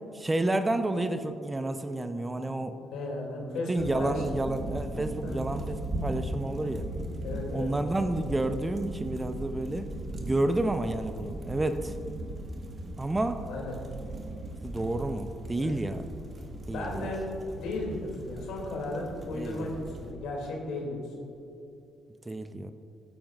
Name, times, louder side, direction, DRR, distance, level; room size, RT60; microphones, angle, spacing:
voice 1, 0.1-2.8 3.5-6.9 7.5-9.9 10.2-12.0 13.0-13.4 14.6-16.1 16.7-17.1 19.3-19.7 22.3-22.7, right 2 dB, 20° right, 9 dB, 0.7 m, -30 dB
voice 2, 2.8-4.2 5.2-5.4 7.2-7.7 13.4-13.8 15.6-15.7 16.7-21.0, left 2 dB, 70° left, -1 dB, 2.6 m, -35 dB
sound 1, 3.8-20.1, right 1 dB, 40° right, 1.6 m, -38 dB
16.5 x 8.8 x 2.5 m, 2.7 s
hypercardioid pair, 50°, 0 cm